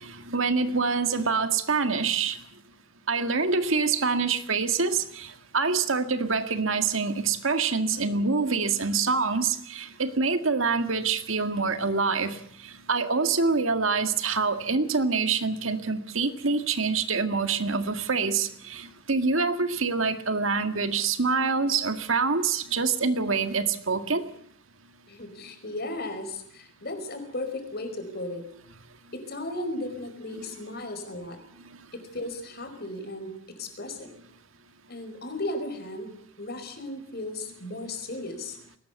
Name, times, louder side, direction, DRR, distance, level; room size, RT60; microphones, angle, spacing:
voice 1, 0.0-2.4 3.1-12.4 12.6-24.2 30.3-30.4, right 4 dB, 70° right, 9 dB, 1.9 m, -26 dB
voice 2, 25.1-28.4 29.1-31.4 31.9-34.1 34.9-36.1 36.4-38.6, left 1 dB, 50° left, 7 dB, 5.0 m, -35 dB
21.5 x 19.0 x 8.2 m, 0.66 s
head